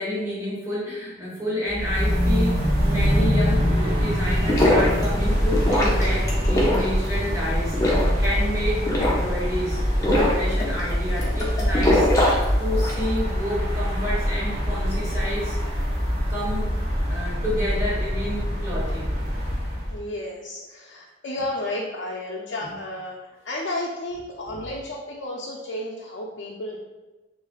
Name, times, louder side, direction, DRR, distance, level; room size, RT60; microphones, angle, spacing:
voice 1, 0.0-12.1 12.6-15.6 16.3-19.1 22.6-22.7 24.5-24.7, equal, 15° right, -7 dB, 1.1 m, -30 dB
sound 1, 1.7-20.0, equal, 60° right, 1.1 m, -24 dB
sound 2, 4.2-13.1, left 1 dB, 20° left, 0.7 m, -24 dB
voice 2, 19.9-26.8, left 1 dB, 75° left, -3 dB, 0.4 m, -32 dB
3.4 x 3.2 x 2.3 m, 1.1 s
head